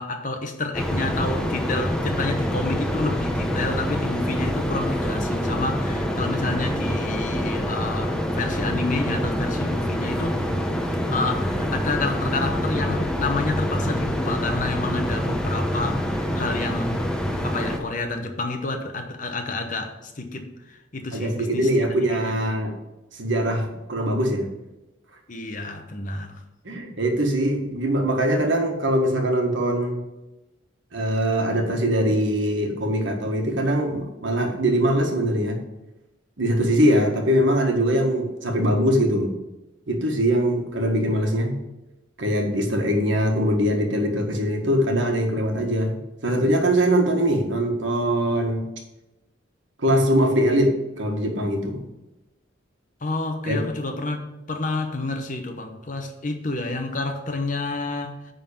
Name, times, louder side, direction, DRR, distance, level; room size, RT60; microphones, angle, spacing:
voice 1, 0.0-10.4 11.1-17.0 17.4-22.4 25.3-26.4 53.0-58.3, left 3 dB, 40° left, 5 dB, 0.9 m, -29 dB
sound 1, 0.7-17.8, equal, 5° left, 1.1 m, -26 dB
voice 2, 21.1-22.8 23.1-24.5 26.6-30.0 30.9-35.6 36.4-39.3 39.9-41.6 42.2-48.6 49.8-51.8 53.4-53.6, equal, 70° right, 3 dB, 1.5 m, -22 dB
9.8 x 3.9 x 7.0 m, 0.98 s
head